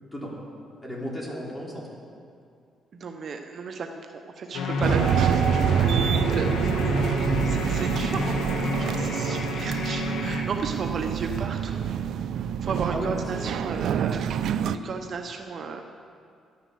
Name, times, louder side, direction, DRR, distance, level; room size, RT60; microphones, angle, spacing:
voice 1, 0.8-1.9 12.9-13.7, equal, 10° left, -4 dB, 3.5 m, -34 dB
voice 2, 2.9-11.9 12.6-15.8, right 4 dB, 55° right, 4 dB, 0.8 m, -35 dB
sound 1, 4.5-10.4, left 4 dB, 85° left, 1.2 m, -30 dB
sound 2, 4.8-14.8, right 8 dB, 70° right, 0.4 m, -26 dB
12.0 x 9.7 x 6.8 m, 2.3 s
cardioid pair, 90°, 0 cm